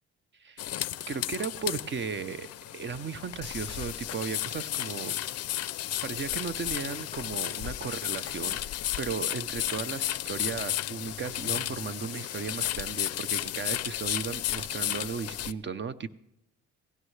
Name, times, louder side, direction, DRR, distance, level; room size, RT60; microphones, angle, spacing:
voice 1, 0.4-5.2 6.0-16.1, right 6 dB, 40° right, 13 dB, 0.7 m, -36 dB
sound 1, 0.6-15.5, left 13 dB, 55° left, 0.5 m, -33 dB
17.5 x 16.0 x 3.3 m, 0.84 s
cardioid pair, 90°, 30 cm